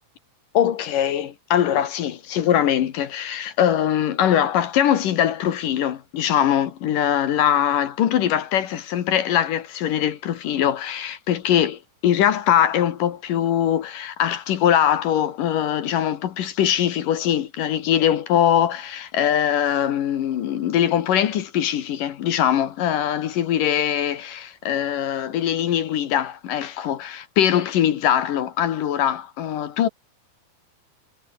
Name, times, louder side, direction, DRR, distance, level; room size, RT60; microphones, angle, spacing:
voice 1, 0.5-29.9, left 10 dB, 65° left, 2.8 m, -22 dB
omnidirectional pair, 4.7 m